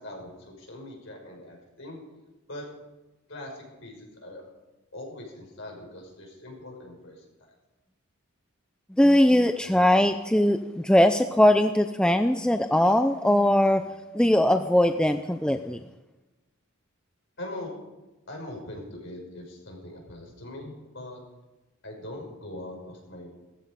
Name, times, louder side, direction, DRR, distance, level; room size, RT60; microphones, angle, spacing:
voice 1, 0.0-2.0 2.5-2.7 3.3-4.4 4.9-7.5 17.4-17.7 18.3-21.2 21.8-23.3, left 1 dB, 60° left, 0 dB, 5.6 m, -41 dB
voice 2, 9.0-10.6 10.8-13.8 14.1-15.8, left 1 dB, 5° left, 8 dB, 0.4 m, -20 dB
16.5 x 14.5 x 5.2 m, 1.1 s
head